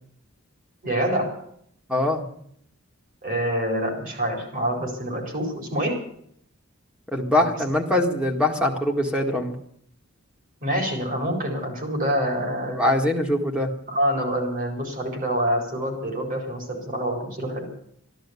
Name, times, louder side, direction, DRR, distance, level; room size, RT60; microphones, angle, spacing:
voice 1, 0.8-1.3 3.2-6.0 10.6-12.8 13.9-17.7, equal, 40° right, 3 dB, 4.4 m, -26 dB
voice 2, 1.9-2.2 7.1-9.6 12.7-13.7, left 1 dB, 5° right, 3 dB, 1.8 m, -23 dB
14.0 x 12.0 x 8.3 m, 0.67 s
head